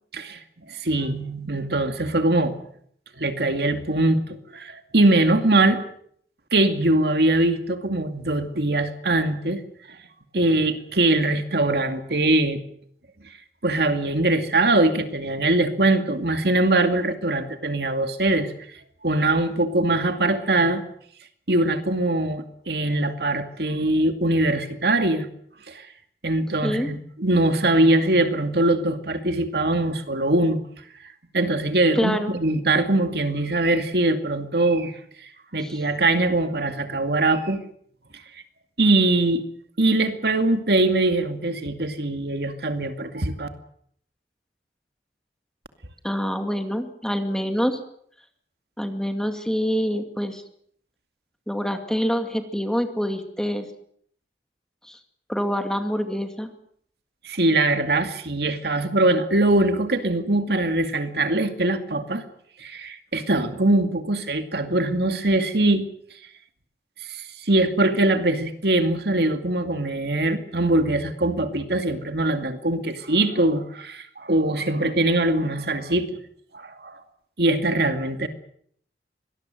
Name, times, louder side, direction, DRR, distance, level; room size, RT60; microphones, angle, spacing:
voice 1, 0.7-2.5 3.2-5.8 6.5-9.6 10.3-12.6 13.6-18.5 19.0-20.8 21.5-25.3 25.7-25.9 26.2-30.6 31.3-34.9 35.5-37.6 38.8-39.4 39.8-43.5 57.2-62.2 62.6-65.8 67.1-76.1 76.5-77.0 77.4-78.3, right 2 dB, 65° right, 7 dB, 2.3 m, -22 dB
voice 2, 31.9-32.3 35.6-35.8 46.0-47.8 48.8-50.4 51.5-53.7 54.8-55.0 55.3-56.5, equal, 5° left, 6 dB, 2.3 m, -26 dB
24.5 x 19.5 x 7.8 m, 0.64 s
head